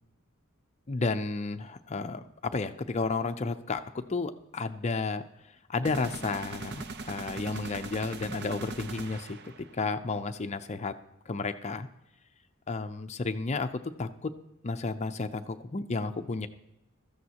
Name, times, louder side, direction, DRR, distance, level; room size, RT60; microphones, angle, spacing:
voice 1, 0.9-5.2 5.7-10.9 11.3-11.9 12.7-14.3 14.6-16.5, left 3 dB, 35° left, 7 dB, 0.6 m, -32 dB
sound 1, 5.9-9.8, right 3 dB, 55° right, 0.7 m, -40 dB
16.0 x 13.5 x 2.9 m, 0.93 s
head